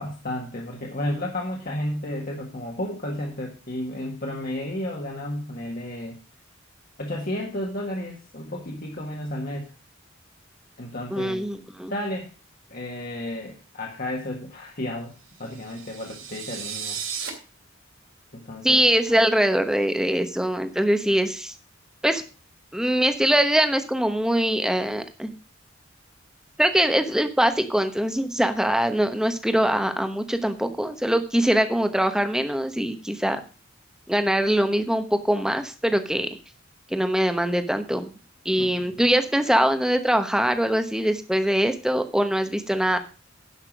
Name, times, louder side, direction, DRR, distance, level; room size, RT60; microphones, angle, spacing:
voice 1, 0.0-6.2 7.0-9.7 10.8-11.4 11.9-12.3 12.7-15.1 15.4-17.0 18.3-18.8 38.6-39.0, left 1 dB, 45° left, -1 dB, 1.7 m, -32 dB
voice 2, 11.1-11.9 18.6-21.5 22.0-22.2 22.7-25.3 26.6-33.4 34.1-36.3 36.9-38.1 38.4-43.0, right 1 dB, 5° right, 8 dB, 1.0 m, -22 dB
sound 1, 15.4-17.3, right 7 dB, 65° right, 3.4 m, -35 dB
11.5 x 5.9 x 6.1 m, 0.35 s
head